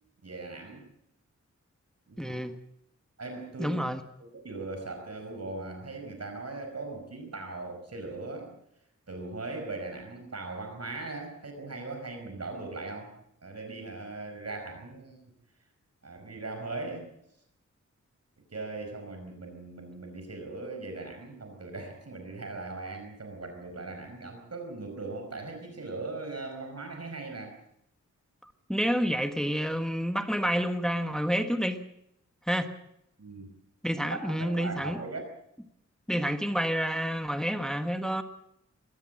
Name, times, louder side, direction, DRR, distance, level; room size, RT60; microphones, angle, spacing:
voice 1, 0.2-0.8 2.1-2.4 3.2-3.8 4.4-8.5 9.1-13.1 13.4-15.2 16.0-17.1 18.5-27.6 33.2-33.5 33.9-35.2, right 3 dB, 60° right, 5.3 m, -39 dB
voice 2, 2.2-2.5 3.6-4.0 28.4-31.8 32.5-32.7 33.8-35.0 36.1-38.2, equal, ahead, 1.4 m, -29 dB
22.0 x 18.0 x 7.6 m
wide cardioid pair, 90°, 29 cm